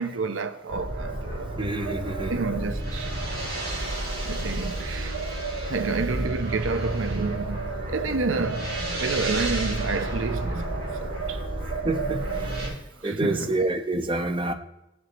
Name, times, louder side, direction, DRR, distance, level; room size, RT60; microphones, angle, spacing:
voice 1, 0.0-1.5 2.3-3.1 4.2-5.1 5.7-11.4 13.0-13.6, right 3 dB, 85° right, 0.8 m, -29 dB
sound 1, 0.7-12.7, right 2 dB, 55° right, 6.4 m, -31 dB
voice 2, 1.6-2.3 11.8-12.8 13.0-14.5, right 2 dB, 25° right, 0.9 m, -28 dB
16.0 x 11.0 x 4.2 m
head